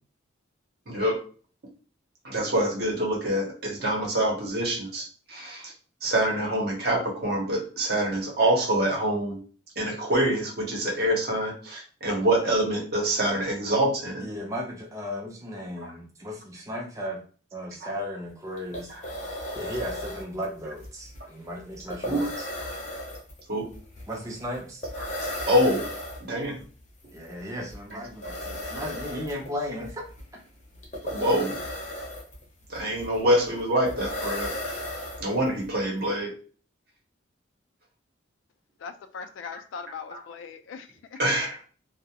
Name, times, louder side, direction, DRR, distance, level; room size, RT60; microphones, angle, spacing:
voice 1, 0.9-1.2 2.2-5.7 6.0-9.4 9.8-14.2 15.8-15.9 17.8-17.9 18.9-19.0 22.0-22.3 23.5-23.7 25.0-25.1 25.5-25.9 26.2-26.6 31.1-31.6 32.7-34.5 35.2-36.3 40.1-40.2 41.2-41.6, right 1 dB, 50° right, 0 dB, 0.7 m, -26 dB
voice 2, 14.2-17.2 17.5-18.9 19.2-22.5 24.1-24.8 27.1-30.0, equal, 15° right, 0 dB, 0.4 m, -35 dB
sound 1, 18.3-18.4 18.6-35.7, left 1 dB, 40° left, 0.6 m, -36 dB
voice 3, 38.8-41.2, left 6 dB, 80° left, 10 dB, 0.3 m, -40 dB
2.2 x 2.0 x 2.8 m, 0.40 s
head